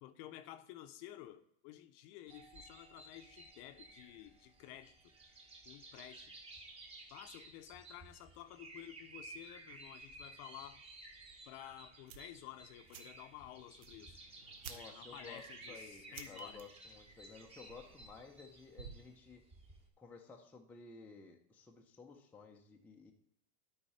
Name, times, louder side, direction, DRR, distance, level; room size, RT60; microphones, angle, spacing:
voice 1, 0.0-4.9 5.7-6.4 7.1-10.8 11.5-14.2 14.7-16.6, left 13 dB, 40° left, 10 dB, 0.7 m, -53 dB
sound 1, 2.3-19.9, right 2 dB, 15° right, 1.1 m, -55 dB
Doorbell, 2.3-7.7, right 10 dB, 35° right, 2.1 m, -71 dB
sound 2, 12.1-19.2, right 7 dB, 75° right, 1.2 m, -56 dB
voice 2, 14.6-19.4 20.0-23.1, left 4 dB, 5° left, 1 dB, 0.5 m, -55 dB
12.0 x 4.8 x 4.1 m, 0.71 s
supercardioid pair, 140°, 38 cm